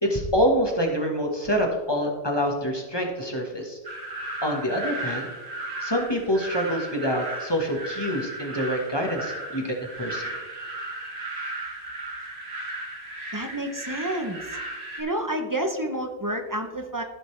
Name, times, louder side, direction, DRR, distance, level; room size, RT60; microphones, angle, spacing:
voice 1, 0.0-3.8 4.4-5.3 5.8-10.3, equal, 25° left, 1 dB, 1.3 m, -26 dB
sound 1, 3.8-15.0, right 1 dB, 75° right, 1.9 m, -35 dB
voice 2, 13.3-14.6 15.0-17.0, right 1 dB, 20° right, 4 dB, 0.7 m, -29 dB
15.0 x 5.2 x 3.3 m, 1.3 s
omnidirectional pair, 1.1 m